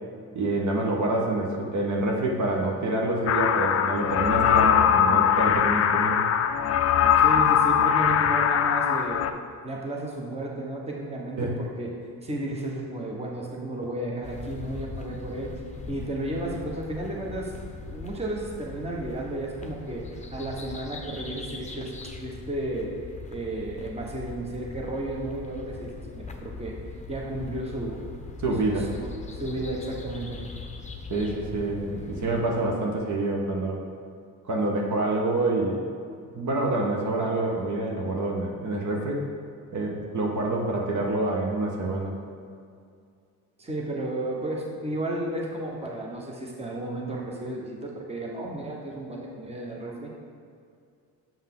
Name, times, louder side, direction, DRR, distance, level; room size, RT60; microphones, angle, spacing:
voice 1, 0.3-6.3 11.4-11.5 28.4-28.9 31.1-33.8 34.5-35.8 36.4-39.2 39.7-42.1, right 2 dB, 45° right, -1 dB, 1.3 m, -27 dB
sound 1, 3.3-9.3, left 9 dB, 40° left, 0.4 m, -21 dB
voice 2, 7.2-9.2 9.6-11.9 12.2-15.5 15.9-17.5 17.9-20.1 20.3-21.9 22.2-22.9 23.3-26.8 27.1-28.0 28.7-30.4 43.6-50.1, right 1 dB, 15° right, -1 dB, 1.2 m, -33 dB
sound 2, 14.2-32.4, left 3 dB, 15° left, 0.8 m, -41 dB
7.3 x 5.5 x 3.8 m, 2.3 s
supercardioid pair, 65°, 40 cm